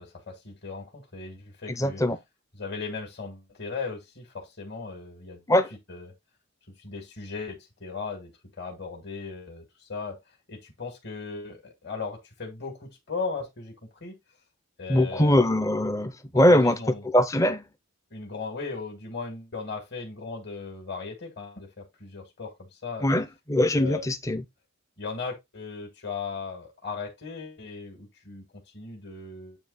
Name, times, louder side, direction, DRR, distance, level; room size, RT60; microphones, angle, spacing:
voice 1, 0.0-2.0 2.5-5.4 5.7-6.1 6.8-8.3 8.6-10.2 10.5-14.2 14.8-15.5 16.3-17.0 18.1-23.1 23.8-24.3 25.0-28.4 28.7-29.6, left 4 dB, 50° left, 2.1 m, -37 dB
voice 2, 1.8-2.2 5.5-5.7 14.9-16.7 17.1-17.6 23.0-24.4, left 1 dB, 15° left, 0.6 m, -22 dB
8.8 x 3.2 x 4.1 m
head